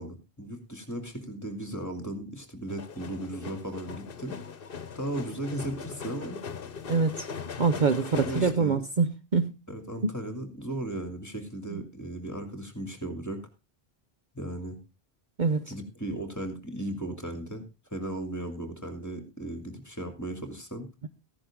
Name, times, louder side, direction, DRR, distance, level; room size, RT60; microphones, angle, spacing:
voice 1, 0.0-4.4 4.9-6.4 8.1-8.8 9.7-13.5 14.3-14.8 15.7-17.6 17.9-20.9, right 1 dB, 15° left, 7 dB, 2.7 m, -36 dB
sound 1, 2.7-8.5, left 6 dB, 65° left, 1.2 m, -39 dB
voice 2, 6.9-7.3 7.6-9.5 10.0-10.1 11.7-11.8 15.4-15.7, right 4 dB, 50° right, 10 dB, 0.9 m, -25 dB
15.5 x 10.5 x 3.7 m, 0.26 s
omnidirectional pair, 1.0 m